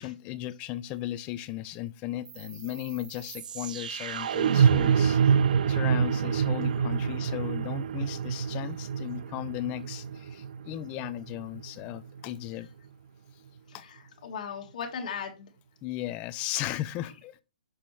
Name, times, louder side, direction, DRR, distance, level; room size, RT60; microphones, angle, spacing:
voice 1, 0.0-5.2 5.7-12.7 13.7-13.8 15.8-17.4, left 14 dB, 25° left, 0.5 m, -36 dB
sound 1, 2.3-12.3, right 7 dB, 60° right, 0.5 m, -27 dB
voice 2, 13.7-15.5 17.0-17.1, left 6 dB, 50° left, 1.8 m, -38 dB
6.3 x 5.9 x 3.2 m
hypercardioid pair, 155°, 5 cm